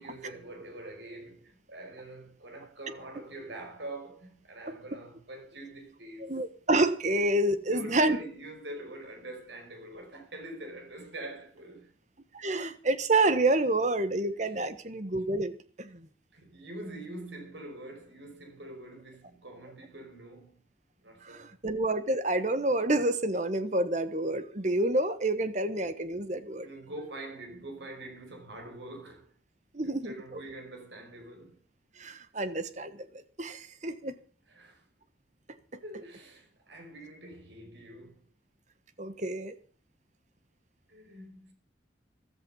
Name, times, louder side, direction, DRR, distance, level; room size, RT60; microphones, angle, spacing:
voice 1, 0.0-6.3 7.7-11.9 14.4-14.7 16.3-20.6 21.0-21.5 26.1-29.3 29.8-31.6 34.5-34.9 35.8-38.3 40.9-41.5, right 1 dB, 80° right, 5.4 m, -45 dB
voice 2, 6.2-8.2 12.3-16.1 21.2-26.7 29.7-30.1 32.0-34.1 39.0-39.6, right 2 dB, 40° right, 1.3 m, -28 dB
14.5 x 13.0 x 5.6 m
head